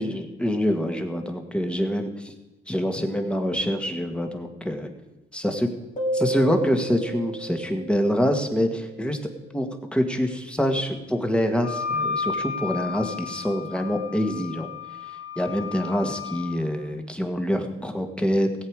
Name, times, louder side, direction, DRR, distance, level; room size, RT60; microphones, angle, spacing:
voice 1, 0.0-2.3 2.7-4.9 5.3-5.7 6.1-9.2 9.5-14.7 15.4-18.7, equal, 5° left, 5 dB, 1.7 m, -25 dB
sound 1, 6.0-9.3, right 1 dB, 35° left, 3.3 m, -32 dB
Wind instrument woodwind instrument, 11.6-16.6, left 5 dB, 60° left, 3.1 m, -32 dB
17.5 x 8.1 x 4.8 m, 1.1 s
cardioid pair, 90°, 20 cm